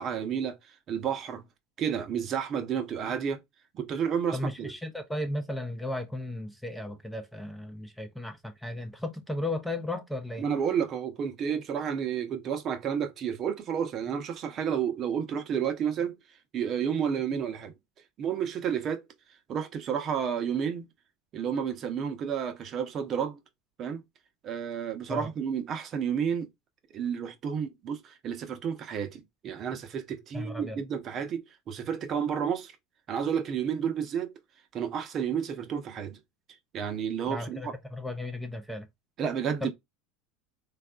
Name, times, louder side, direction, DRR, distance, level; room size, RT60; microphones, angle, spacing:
voice 1, 0.0-1.4 1.8-3.4 3.7-4.7 10.4-16.1 16.5-17.7 18.2-19.0 19.5-20.9 21.3-23.4 23.8-24.0 24.4-26.5 26.9-32.7 33.1-34.3 34.7-36.2 36.7-37.7 39.2-39.7, right 7 dB, 40° right, 0.7 m, -31 dB
voice 2, 4.3-10.5 25.1-25.3 30.3-30.8 37.3-38.9 39.6-39.7, left 1 dB, 5° left, 0.5 m, -35 dB
3.3 x 2.3 x 2.3 m
supercardioid pair, 110°, 0 cm